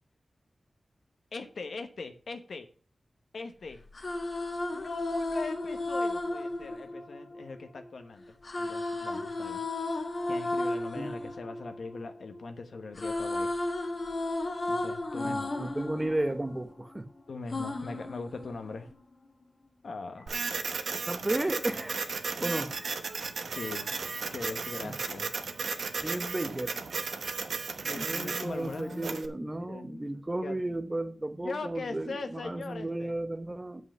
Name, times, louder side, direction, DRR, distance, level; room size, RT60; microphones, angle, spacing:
voice 1, 1.3-2.7 3.3-3.8 4.7-9.6 10.3-13.5 14.7-15.6 17.3-18.9 19.8-20.4 23.6-23.9 24.3-25.3 27.8-29.2 29.6-30.0 30.4-30.6 31.4-33.1, left 3 dB, 80° left, 1.1 m, -40 dB
sound 1, 3.8-7.8 8.4-12.5 12.8-17.0 17.5-18.9, left 2 dB, 45° left, 1.3 m, -34 dB
voice 2, 15.2-17.1 21.1-22.1 22.4-23.2 24.8-25.0 26.0-26.8 27.9-33.8, right 1 dB, 20° right, 0.8 m, -34 dB
Printer, 20.3-29.3, right 4 dB, 90° right, 1.0 m, -35 dB
7.8 x 5.6 x 6.7 m
wide cardioid pair, 115°, 0 cm